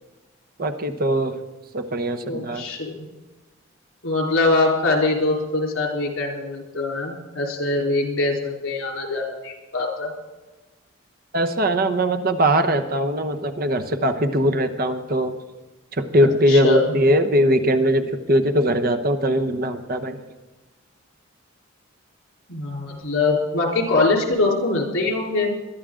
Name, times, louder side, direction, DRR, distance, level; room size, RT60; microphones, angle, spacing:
voice 1, 0.6-1.4 1.7-2.7 11.3-15.4 15.9-20.2, equal, 45° right, 8 dB, 0.9 m, -21 dB
voice 2, 2.2-3.0 4.0-10.1 16.2-16.9 22.5-25.5, left 3 dB, 75° left, 0 dB, 3.8 m, -23 dB
21.5 x 12.0 x 3.8 m, 1.1 s
head